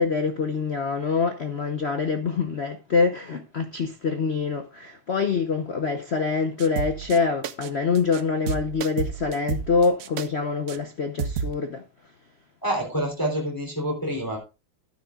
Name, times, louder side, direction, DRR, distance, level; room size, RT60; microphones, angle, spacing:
voice 1, 0.0-11.8, left 4 dB, 65° left, 0.6 m, -25 dB
sound 1, 6.6-7.2 7.4-7.7 7.9-8.2 8.5-10.3 10.7-10.8 11.2-11.5, right 6 dB, 80° right, 0.7 m, -30 dB
voice 2, 12.6-14.4, right 1 dB, 10° left, 3.2 m, -27 dB
12.0 x 9.8 x 2.3 m
omnidirectional pair, 2.3 m